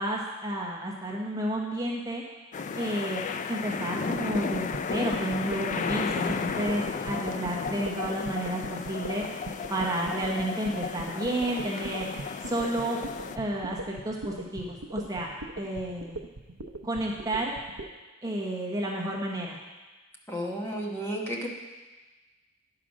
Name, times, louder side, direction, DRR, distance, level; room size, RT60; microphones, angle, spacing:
voice 1, 0.0-2.2 2.7-3.2 3.5-9.3 9.7-12.1 12.4-13.0 13.3-15.3 15.6-16.2 16.8-17.5 18.2-19.6, right 1 dB, 15° right, -2 dB, 0.9 m, -31 dB
sound 1, 2.5-13.4, left 5 dB, 35° left, 0.3 m, -34 dB
sound 2, 4.2-17.9, right 2 dB, 75° right, 0.7 m, -39 dB
voice 2, 20.3-21.5, equal, 10° left, -2 dB, 1.0 m, -32 dB
9.9 x 4.9 x 6.2 m, 1.2 s
head